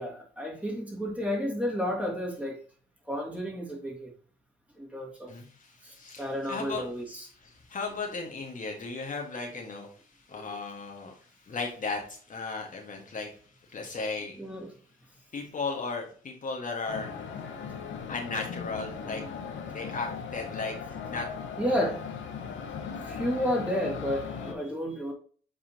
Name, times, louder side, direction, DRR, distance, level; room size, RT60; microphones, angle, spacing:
voice 1, 0.0-2.6 3.1-4.1 4.8-5.3 5.8-7.3 10.3-10.6 14.4-14.7 21.6-22.0 23.0-25.1, equal, 5° right, 2.5 m, -32 dB
voice 2, 5.3-6.8 7.5-9.9 10.3-11.1 11.4-13.3 13.7-14.4 15.3-17.1 18.1-19.2 19.7-20.7 21.1-21.3 21.8-21.9 22.4-22.6, left 4 dB, 40° left, 1.6 m, -35 dB
sound 1, 16.9-24.5, left 6 dB, 75° left, 1.3 m, -38 dB
7.7 x 4.2 x 2.9 m
cardioid pair, 90°, 20 cm